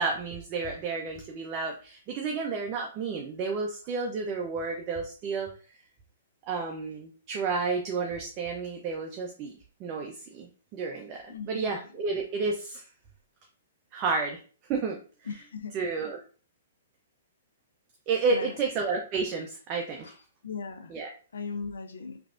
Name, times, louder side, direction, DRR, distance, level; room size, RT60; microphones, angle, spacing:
voice 1, 0.0-5.5 6.5-12.9 13.9-14.4 14.7-15.0 15.7-16.2 18.1-20.1 20.9-21.1, right 4 dB, 35° right, 1 dB, 0.5 m, -31 dB
voice 2, 11.3-12.0 15.2-15.8 18.3-18.7 20.0-20.1 20.4-20.9 21.3-22.2, left 5 dB, 80° left, 6 dB, 0.6 m, -38 dB
3.3 x 2.5 x 2.4 m, 0.39 s
hypercardioid pair, 130°, 0 cm